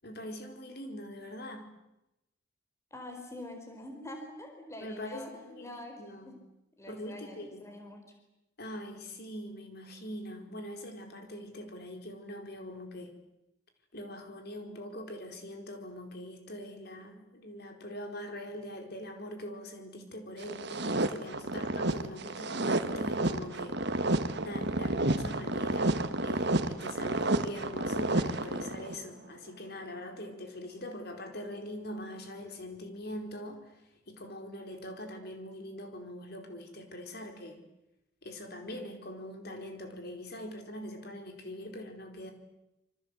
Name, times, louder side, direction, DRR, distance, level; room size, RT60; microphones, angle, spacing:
voice 1, 0.0-1.7 4.8-6.3 6.9-7.6 8.6-13.2 13.9-23.8 24.4-33.7 34.1-37.6 38.2-42.3, left 1 dB, 50° left, 5 dB, 4.5 m, -43 dB
voice 2, 2.9-5.3 5.6-5.9 6.2-6.3 6.8-8.0, left 1 dB, 15° left, 4 dB, 4.3 m, -45 dB
sound 1, 20.4-29.0, right 2 dB, 55° right, 1.6 m, -31 dB
27.5 x 25.5 x 8.2 m, 0.91 s
head